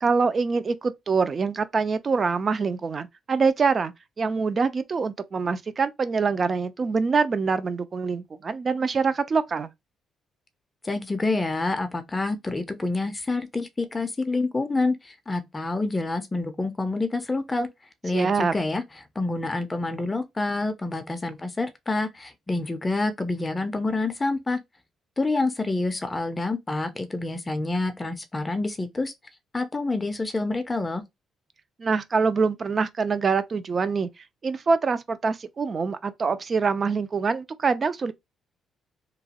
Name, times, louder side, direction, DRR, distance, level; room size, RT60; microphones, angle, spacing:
voice 1, 0.0-9.7 18.1-18.5 31.8-34.1 34.4-38.1, right 5 dB, 40° right, 0.4 m, -25 dB
voice 2, 10.8-17.7 18.0-24.6 25.2-29.1 29.5-31.0, left 2 dB, 20° left, 0.4 m, -27 dB
2.9 x 2.2 x 2.8 m
cardioid pair, 90°, 0 cm